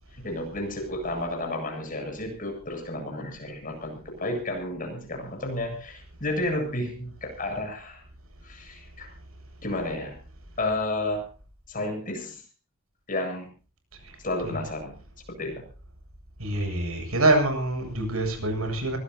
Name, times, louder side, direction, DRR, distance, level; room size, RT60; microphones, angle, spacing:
voice 1, 0.2-8.0 8.4-9.1 9.6-10.2 10.6-11.3 11.7-12.4 13.1-13.5 14.2-15.0 15.3-15.6, left 1 dB, 40° left, 3 dB, 8.0 m, -31 dB
voice 2, 16.4-19.0, right 2 dB, 85° right, 5 dB, 8.0 m, -25 dB
24.5 x 18.5 x 2.9 m, 0.36 s
head